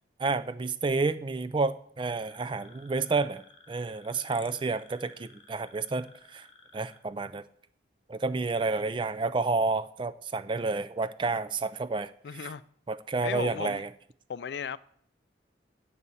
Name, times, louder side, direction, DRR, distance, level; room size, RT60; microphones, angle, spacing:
voice 1, 0.2-3.4 3.7-6.5 6.7-7.4 8.1-12.5 12.9-13.9, right 3 dB, 25° right, 0.3 m, -30 dB
sound 1, 2.2-7.0, left 4 dB, 25° left, 1.0 m, -55 dB
voice 2, 12.2-12.6 13.2-13.8 14.3-14.8, left 6 dB, 60° left, 0.4 m, -35 dB
8.5 x 6.8 x 7.1 m
head